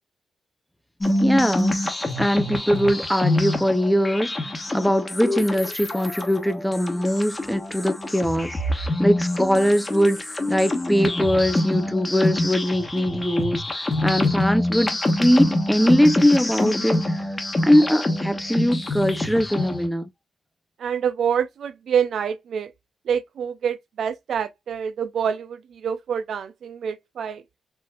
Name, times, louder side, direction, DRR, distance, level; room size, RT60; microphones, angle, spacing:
sound 1, 1.0-19.9, left 1 dB, 20° left, 1.2 m, -26 dB
voice 1, 1.2-1.8 2.2-8.6 9.0-17.3 17.6-20.1, equal, ahead, 0.6 m, -21 dB
voice 2, 20.8-22.7 23.1-27.4, right 7 dB, 70° right, 0.5 m, -26 dB
4.6 x 3.0 x 2.3 m
cardioid pair, 95°, 0 cm